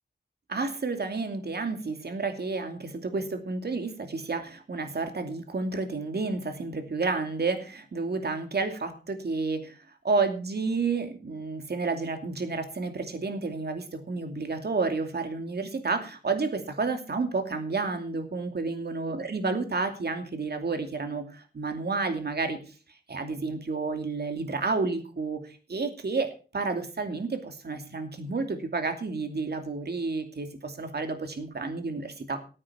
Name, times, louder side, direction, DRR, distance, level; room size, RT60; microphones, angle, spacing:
voice 1, 0.5-9.8 10.0-22.6 23.1-32.4, right 4 dB, 60° right, 6 dB, 2.7 m, -30 dB
14.5 x 8.7 x 5.7 m, 0.36 s
cardioid pair, 65°, 19 cm